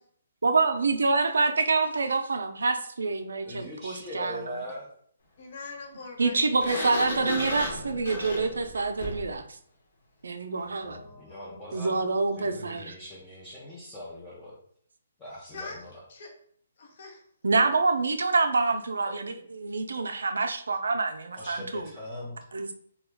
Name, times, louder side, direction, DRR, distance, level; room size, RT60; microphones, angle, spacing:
voice 1, 0.4-4.5 6.2-9.4 10.2-11.0 11.7-13.0 17.4-21.9 22.5-22.7, right 3 dB, 90° right, 7 dB, 0.4 m, -26 dB
voice 2, 3.4-4.9 10.5-12.1 12.3-14.5 15.2-15.9 21.3-22.4, left 1 dB, 10° left, -7 dB, 0.5 m, -41 dB
voice 3, 5.4-7.1 10.8-12.2 15.4-15.8 16.1-16.3 16.8-17.2, left 3 dB, 50° left, 1 dB, 0.8 m, -44 dB
Sliding door, 6.6-9.4, left 1 dB, 70° left, 1.2 m, -34 dB
3.0 x 2.2 x 3.4 m, 0.62 s
hypercardioid pair, 165°, 0 cm